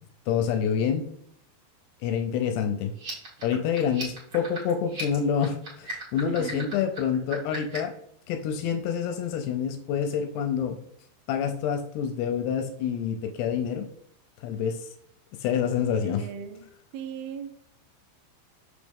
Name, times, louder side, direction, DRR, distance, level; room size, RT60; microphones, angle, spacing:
voice 1, 0.3-1.1 2.0-2.9 3.4-7.9 8.3-10.8 11.3-13.9 14.4-14.9 15.4-16.2, left 7 dB, 80° left, 7 dB, 2.4 m, -27 dB
sound 1, 2.9-8.0, right 3 dB, 40° right, 1.7 m, -39 dB
voice 2, 6.2-6.7 15.9-16.7 16.9-17.6, right 8 dB, 80° right, 4 dB, 2.1 m, -37 dB
6.6 x 6.1 x 3.5 m, 0.69 s
omnidirectional pair, 5.3 m